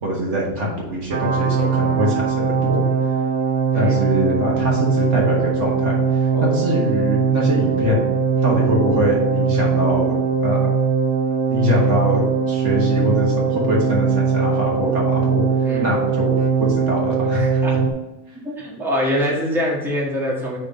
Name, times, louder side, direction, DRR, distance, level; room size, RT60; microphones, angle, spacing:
voice 1, 0.0-2.8 3.7-8.1 8.4-10.2 10.4-10.7 11.5-17.6, equal, 55° right, -3 dB, 1.6 m, -23 dB
sound 1, 1.1-17.9, right 5 dB, 80° right, 1.3 m, -20 dB
voice 2, 3.7-4.2 6.3-6.6 15.6-15.9 17.3-17.8 18.4-20.6, equal, ahead, -4 dB, 1.3 m, -24 dB
5.1 x 4.3 x 5.1 m, 1.0 s
omnidirectional pair, 1.5 m